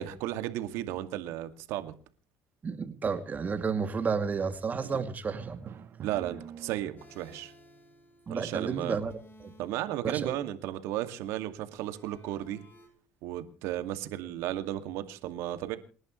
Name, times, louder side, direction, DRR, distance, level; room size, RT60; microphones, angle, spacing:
voice 1, 0.0-1.9 4.9-5.0 6.0-7.5 8.3-9.0 9.6-12.6 13.2-15.8, right 13 dB, 75° right, 2.2 m, -34 dB
voice 2, 2.6-5.7 8.3-9.1 9.4-9.5 10.0-10.4, right 5 dB, 35° right, 2.6 m, -31 dB
Drum, 5.3-7.4, right 8 dB, 50° right, 1.6 m, -45 dB
sound 1, 7.0-9.8 11.6-12.9, left 1 dB, 40° left, 6.9 m, -57 dB
29.0 x 11.0 x 3.2 m
supercardioid pair, 80°, 5 cm